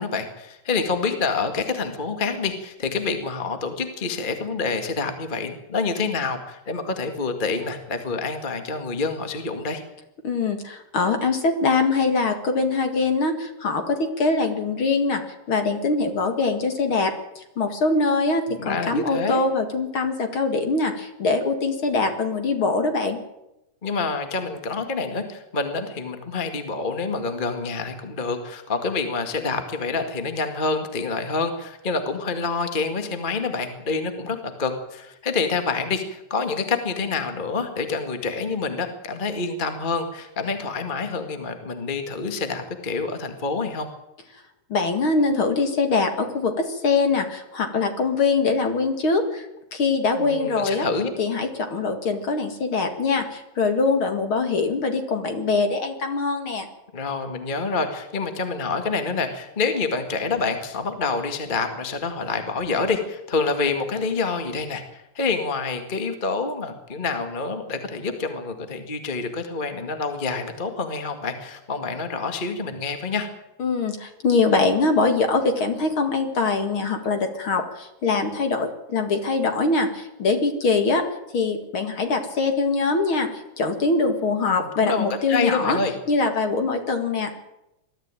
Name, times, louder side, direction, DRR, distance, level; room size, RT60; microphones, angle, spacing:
voice 1, 0.0-9.8 18.5-19.4 23.8-43.9 50.2-51.1 56.9-73.3 84.5-85.9, left 4 dB, 20° left, 7 dB, 1.4 m, -27 dB
voice 2, 10.2-15.2 15.5-23.2 44.7-49.5 49.7-50.9 51.2-56.7 73.6-81.0 81.3-83.3 83.6-85.8 86.1-87.3, left 3 dB, 45° left, 6 dB, 2.4 m, -23 dB
21.5 x 13.5 x 9.0 m, 0.88 s
omnidirectional pair, 3.7 m